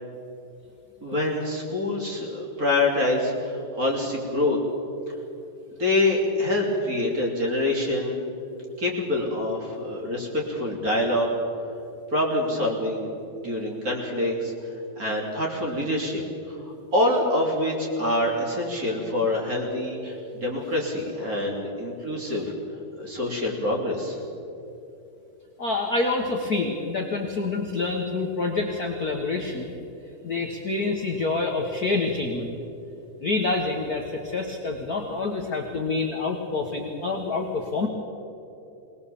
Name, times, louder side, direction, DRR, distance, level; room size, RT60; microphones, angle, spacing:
voice 1, 1.0-4.6 5.8-8.2 8.8-11.3 12.1-14.5 15.0-16.6 16.9-22.5 23.0-24.2, left 1 dB, 25° right, -1 dB, 3.1 m, -26 dB
voice 2, 25.6-29.7 30.2-32.6 33.2-37.9, left 3 dB, 55° left, 1 dB, 1.0 m, -27 dB
22.0 x 19.5 x 7.1 m, 2.8 s
omnidirectional pair, 3.8 m